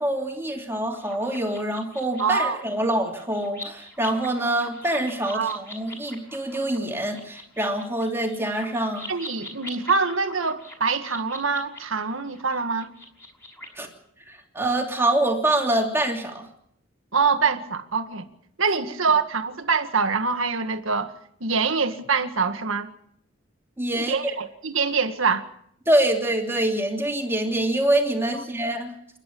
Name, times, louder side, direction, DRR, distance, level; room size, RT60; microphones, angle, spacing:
voice 1, 0.0-9.1 13.8-13.9 14.3-16.4 23.8-24.3 25.9-28.9, right 1 dB, 10° right, 2.8 m, -25 dB
sound 1, 0.9-13.7, left 1 dB, 15° left, 5.9 m, -43 dB
voice 2, 2.2-2.6 5.3-5.6 9.1-12.9 17.1-18.3 18.6-21.1 21.4-22.9 23.9-25.4, right 5 dB, 70° right, 1.7 m, -24 dB
29.0 x 11.5 x 8.5 m
head